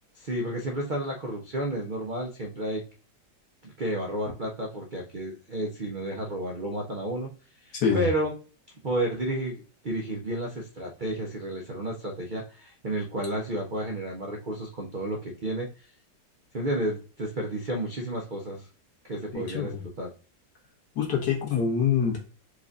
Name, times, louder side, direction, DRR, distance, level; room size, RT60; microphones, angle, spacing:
voice 1, 0.2-2.8 3.6-7.3 7.6-8.3 8.8-15.7 16.5-18.7 19.0-20.1, right 1 dB, 70° right, 1 dB, 0.4 m, -31 dB
voice 2, 7.7-8.1 19.3-19.9 21.0-22.2, left 6 dB, 70° left, 0 dB, 1.9 m, -25 dB
4.7 x 2.5 x 3.9 m, 0.36 s
omnidirectional pair, 1.9 m